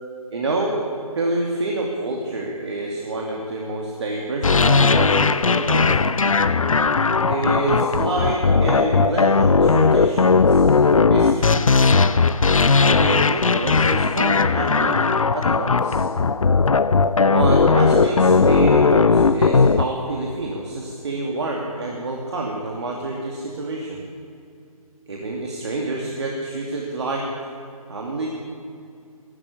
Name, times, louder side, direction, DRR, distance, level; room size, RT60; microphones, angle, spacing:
voice 1, 0.3-0.8 1.1-6.1 7.2-10.8 11.1-11.7 12.6-15.0 15.3-16.1 17.3-24.0 25.1-27.3 27.9-28.3, right 2 dB, 45° right, -1 dB, 2.7 m, -27 dB
sound 1, 4.4-19.8, left 4 dB, 60° left, 0.8 m, -17 dB
24.5 x 13.0 x 8.5 m, 2.5 s
figure-of-eight pair, 150°, 19 cm